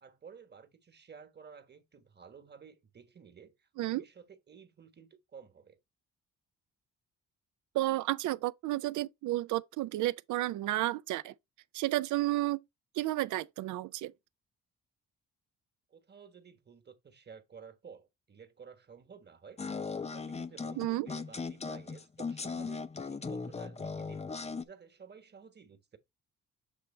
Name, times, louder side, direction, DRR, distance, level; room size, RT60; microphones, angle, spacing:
voice 1, 0.0-5.8 15.9-19.6 20.1-24.2 24.6-26.0, right 6 dB, 35° right, 1.2 m, -53 dB
voice 2, 7.7-11.3 11.7-12.6 12.9-14.1 20.8-21.1, right 16 dB, 75° right, 0.5 m, -32 dB
sound 1, 19.6-24.6, left 4 dB, 20° left, 0.6 m, -38 dB
7.2 x 3.2 x 4.3 m
cardioid pair, 90°, 30 cm